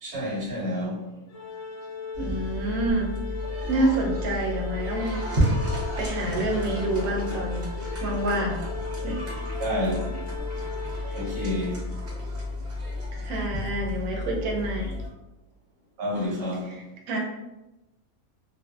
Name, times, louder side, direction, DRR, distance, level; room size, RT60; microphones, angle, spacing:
voice 1, 0.0-1.0 9.6-10.3 11.1-11.8 16.0-16.7, left 1 dB, 90° right, -6 dB, 1.3 m, -29 dB
Organ, 1.3-12.2, left 4 dB, 65° left, 0.8 m, -38 dB
sound 1, 2.1-15.1, left 1 dB, 50° right, 0.8 m, -31 dB
voice 2, 2.2-3.1 3.7-5.2 6.0-7.6 8.0-8.6 9.0-9.2 11.1-11.3 13.1-15.0 16.7-17.2, right 1 dB, 70° right, -1 dB, 1.0 m, -28 dB
2.5 x 2.3 x 2.3 m, 1.0 s
omnidirectional pair, 1.6 m